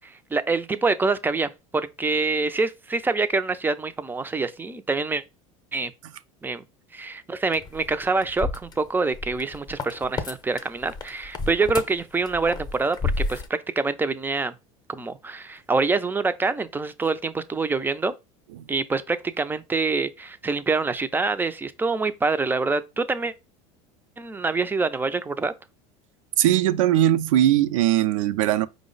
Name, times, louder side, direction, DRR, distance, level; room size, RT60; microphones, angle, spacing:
voice 1, 0.0-5.2 5.7-5.9 6.4-6.6 6.9-13.0 13.3-14.5 14.9-18.1 18.7-23.3 24.2-25.5, right 3 dB, 10° right, 0.4 m, -26 dB
sound 1, 7.5-10.3 10.6-13.5, left 3 dB, 25° left, 0.6 m, -31 dB
voice 2, 26.4-28.7, right 12 dB, 85° right, 0.4 m, -20 dB
4.8 x 2.0 x 3.8 m
supercardioid pair, 100°, 17 cm